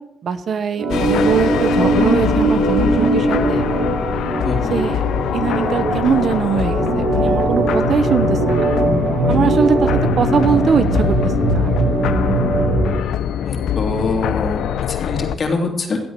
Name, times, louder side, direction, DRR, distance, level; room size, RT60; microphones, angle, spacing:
voice 1, 0.2-3.6 4.7-5.0 5.3-8.7 9.3-11.7, right 6 dB, 55° right, 11 dB, 1.0 m, -21 dB
Organ, 0.8-12.9, right 2 dB, 85° right, 5.3 m, -20 dB
sound 1, 0.9-15.4, left 10 dB, 75° left, 0.7 m, -23 dB
voice 2, 4.4-4.8 13.4-16.0, left 3 dB, 45° left, 3 dB, 3.0 m, -24 dB
15.5 x 8.2 x 7.5 m, 0.88 s
cardioid pair, 90°, 0 cm